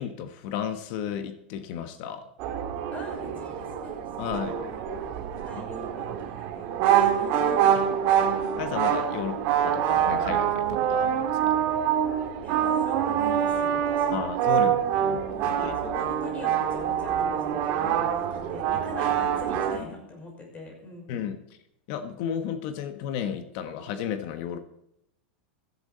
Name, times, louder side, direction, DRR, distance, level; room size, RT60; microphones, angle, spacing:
voice 1, 0.0-2.3 4.2-4.7 5.5-5.6 8.6-11.6 14.1-15.2 15.6-16.0 21.1-21.6 21.9-24.6, left 8 dB, 55° left, 8 dB, 1.4 m, -33 dB
sound 1, 2.4-19.8, right 9 dB, 50° right, 2.0 m, -25 dB
voice 2, 2.9-4.0 4.3-4.8 5.4-7.7 8.1-8.2 12.4-14.2 14.6-14.9 15.3-21.2, left 1 dB, 25° left, 1 dB, 6.1 m, -43 dB
15.0 x 11.5 x 4.2 m, 0.80 s
hypercardioid pair, 110°, 5 cm